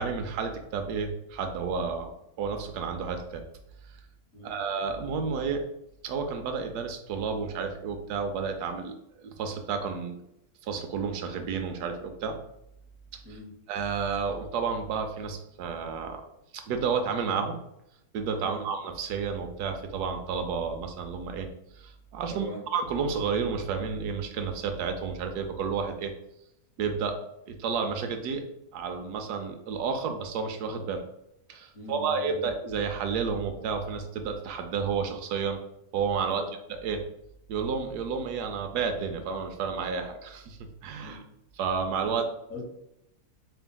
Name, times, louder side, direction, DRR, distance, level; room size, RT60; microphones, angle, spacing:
voice 1, 0.0-2.1 2.4-3.4 4.4-5.6 6.0-8.9 9.2-10.2 10.6-12.4 13.7-16.2 16.5-17.6 18.1-21.5 21.8-26.1 26.8-27.2 27.5-28.4 28.7-31.0 31.5-35.6 35.9-36.4 36.7-37.0 37.5-40.6 40.8-41.2 41.6-42.2, right 5 dB, 85° right, 5 dB, 1.1 m, -31 dB
voice 2, 13.2-13.5 18.4-18.7 22.3-22.7 31.7-32.4 36.3-36.5 41.0-41.2 42.1-42.2 42.5-42.7, left 1 dB, 60° left, -1 dB, 1.4 m, -42 dB
4.4 x 3.4 x 2.2 m, 0.81 s
omnidirectional pair, 1.7 m